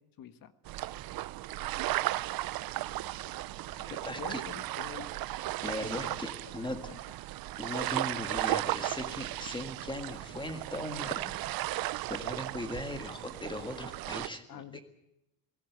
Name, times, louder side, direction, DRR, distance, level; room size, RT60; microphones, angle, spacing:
voice 1, 0.2-0.5 4.2-5.1 5.8-6.2 6.7-7.0 14.5-14.8, left 10 dB, 50° left, 11 dB, 1.5 m, -46 dB
sound 1, 0.7-14.3, right 16 dB, 55° right, 0.7 m, -35 dB
voice 2, 3.7-4.4 5.6-6.8 7.6-11.3 11.7-14.6, left 1 dB, 10° left, 7 dB, 1.8 m, -39 dB
19.0 x 15.0 x 9.4 m, 0.87 s
cardioid pair, 135°, 43 cm